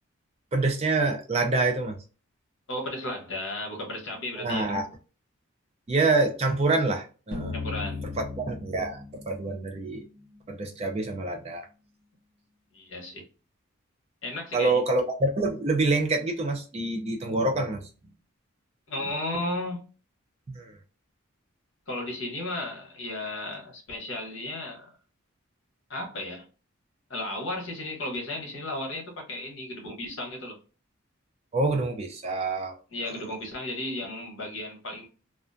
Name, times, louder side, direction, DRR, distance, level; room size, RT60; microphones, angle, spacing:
voice 1, 0.5-2.0 4.4-4.8 5.9-7.5 8.2-10.0 10.5-11.6 14.5-17.9 20.5-20.7 31.5-32.8 33.0-33.1, right 3 dB, 30° right, 0.3 m, -26 dB
voice 2, 2.7-4.7 7.5-8.0 12.7-13.2 14.2-14.8 18.9-19.8 21.9-24.9 25.9-26.5 27.1-30.6 32.9-35.1, left 1 dB, 60° left, 0.9 m, -34 dB
sound 1, 7.3-10.2, left 3 dB, 50° right, 0.9 m, -36 dB
2.4 x 2.1 x 2.4 m
head